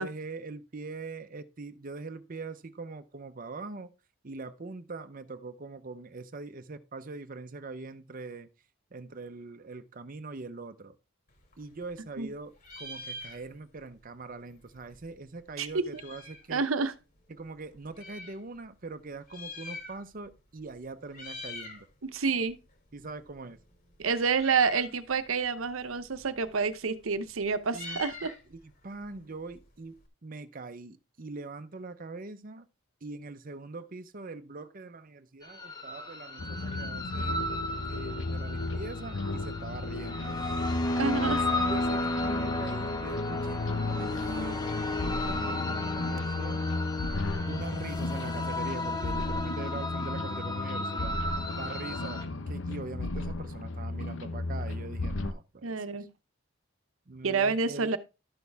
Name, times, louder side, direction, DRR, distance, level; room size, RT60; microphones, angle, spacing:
voice 1, 0.0-3.9 4.2-8.5 8.9-11.0 11.6-16.6 17.3-21.9 22.9-23.6 27.7-28.0 28.5-32.7 33.0-37.4 37.8-40.4 41.0-41.2 41.6-44.6 45.0-46.6 47.5-51.2 51.6-56.1 57.1-57.9, right 3 dB, 45° right, 0.7 m, -42 dB
Meow, 11.3-12.3 12.6-13.8 14.1-14.2 14.4-16.5 17.2-18.4 19.1-20.3 20.6-20.8 21.1-21.8 22.2-30.1, left 2 dB, 45° left, 2.6 m, -45 dB
voice 2, 15.6-15.9 16.5-16.9 22.0-22.6 24.0-28.3 41.0-41.4 55.6-56.1 57.2-58.0, right 5 dB, 90° right, 0.8 m, -28 dB
sound 1, 35.4-52.2, left 2 dB, 20° left, 1.1 m, -34 dB
sound 2, 36.4-55.3, left 2 dB, 65° left, 0.9 m, -35 dB
12.0 x 6.4 x 3.4 m
head